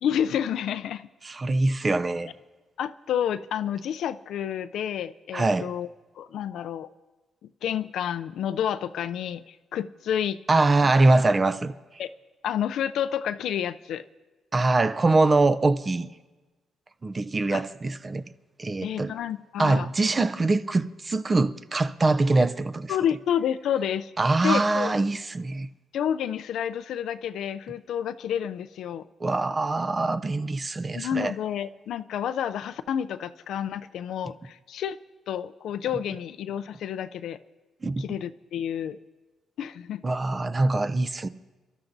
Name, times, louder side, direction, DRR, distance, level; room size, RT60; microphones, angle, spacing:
voice 1, 0.0-1.1 2.8-5.9 6.2-6.9 7.6-10.4 12.0-12.1 12.4-14.0 17.5-17.6 18.8-19.9 22.9-24.1 24.4-24.9 25.9-29.0 30.9-35.0 35.3-37.4 38.0-39.0 39.6-40.0, left 9 dB, 75° left, 0.4 m, -29 dB
voice 2, 1.2-2.3 5.3-5.7 10.5-11.7 14.5-16.1 17.0-18.2 18.6-19.1 19.6-22.9 24.2-25.7 29.2-31.3 37.8-38.0 40.0-41.3, right 2 dB, 25° right, 0.5 m, -23 dB
29.0 x 13.0 x 2.7 m
cardioid pair, 125°, 0 cm